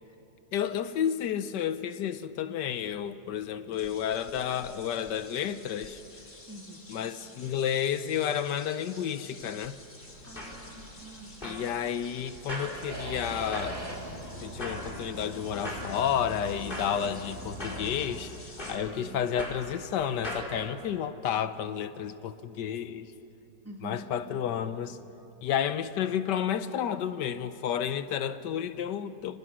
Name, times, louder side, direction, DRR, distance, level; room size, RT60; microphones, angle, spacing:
voice 1, 0.5-6.0 6.9-9.8 11.4-13.8 14.4-23.1 23.8-25.0 25.4-29.4, left 9 dB, 85° left, 1.5 m, -31 dB
sound 1, 3.7-18.8, left 2 dB, 45° left, 3.3 m, -51 dB
voice 2, 6.5-6.8 10.2-11.6 14.1-14.2 18.9-19.3 23.6-24.4, right 2 dB, 10° right, 1.6 m, -47 dB
sound 2, 10.1-20.5, equal, 30° left, 4.7 m, -42 dB
sound 3, 12.9-18.2, right 1 dB, 35° right, 2.6 m, -41 dB
29.5 x 26.5 x 6.3 m
omnidirectional pair, 1.8 m